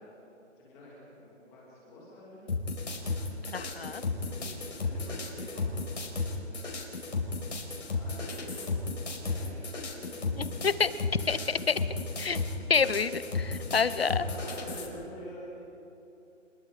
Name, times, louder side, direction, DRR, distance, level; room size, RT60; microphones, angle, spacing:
voice 1, 0.0-2.5 3.9-5.8 6.1-6.8 7.9-11.8 13.7-15.6, left 1 dB, 5° left, -6 dB, 2.6 m, -48 dB
sound 1, 2.5-14.9, left 3 dB, 70° left, 4.9 m, -34 dB
voice 2, 3.5-4.0 10.4-10.9 11.3-11.8 12.2-12.4 12.7-14.2, left 5 dB, 50° left, 14 dB, 0.9 m, -28 dB
29.0 x 21.5 x 5.0 m, 2.9 s
hypercardioid pair, 180°, 38 cm